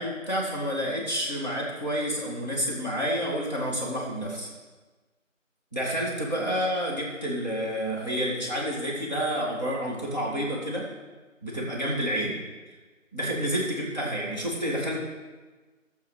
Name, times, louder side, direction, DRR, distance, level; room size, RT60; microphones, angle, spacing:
voice 1, 0.0-4.5 5.7-10.9 11.4-12.4 13.1-15.0, equal, 35° left, -6 dB, 2.2 m, -29 dB
11.5 x 7.2 x 5.0 m, 1.3 s
figure-of-eight pair, 180°, 39 cm